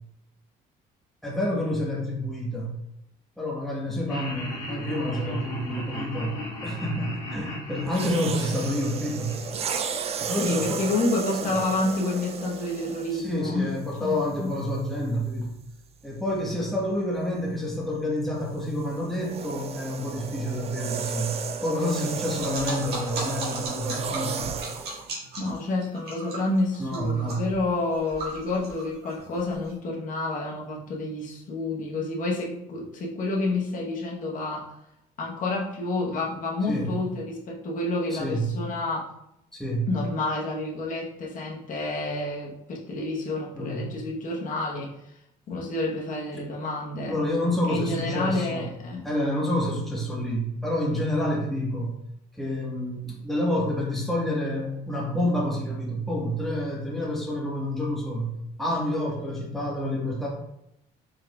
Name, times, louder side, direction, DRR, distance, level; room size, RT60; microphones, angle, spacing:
voice 1, 1.2-2.8 3.4-9.4 10.2-10.9 11.4-11.5 13.1-15.5 16.0-24.6 26.8-27.4 36.7-37.0 38.1-38.5 39.5-39.9 43.5-43.9 47.1-48.7 49.0-52.0 52.3-60.3, equal, ahead, -5 dB, 1.3 m, -28 dB
Laughter, 4.1-10.3, left 1 dB, 85° left, 1.4 m, -37 dB
sound 1, 7.9-13.4 14.2-14.4 18.4-25.1, right 6 dB, 40° right, 0.4 m, -34 dB
voice 2, 10.4-13.7 14.0-14.6 25.4-34.7 35.2-39.1 39.9-44.9 45.5-47.2 47.7-49.1, left 2 dB, 50° left, -3 dB, 1.0 m, -29 dB
sound 2, 22.3-29.7, right 2 dB, 70° right, 1.6 m, -37 dB
5.1 x 3.6 x 2.3 m, 0.81 s
cardioid pair, 110°, 17 cm